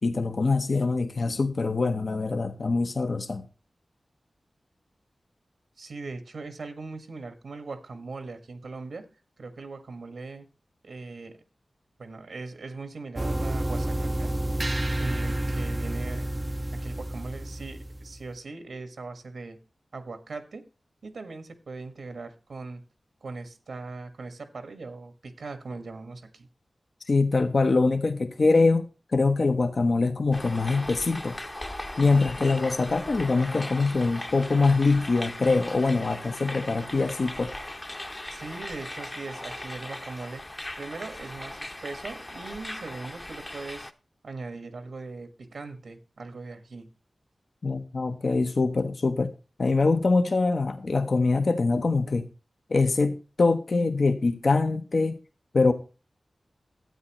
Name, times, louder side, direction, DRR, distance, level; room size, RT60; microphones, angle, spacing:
voice 1, 0.0-3.5 27.1-28.8 29.1-31.4 32.0-37.5 47.6-49.3 49.6-52.3 52.7-55.2 55.5-55.7, left 3 dB, 60° left, 0.9 m, -24 dB
voice 2, 5.8-9.1 9.4-10.5 10.8-11.4 12.0-14.3 14.9-16.3 16.7-19.6 19.9-20.6 21.0-22.8 23.2-26.5 38.3-40.4 40.8-43.9 44.2-46.9, right 3 dB, 85° right, 1.6 m, -40 dB
sound 1, 13.2-18.3, right 1 dB, 30° right, 0.5 m, -30 dB
sound 2, 30.3-43.9, left 1 dB, 25° left, 0.8 m, -38 dB
12.5 x 8.8 x 3.1 m
wide cardioid pair, 70°, 0 cm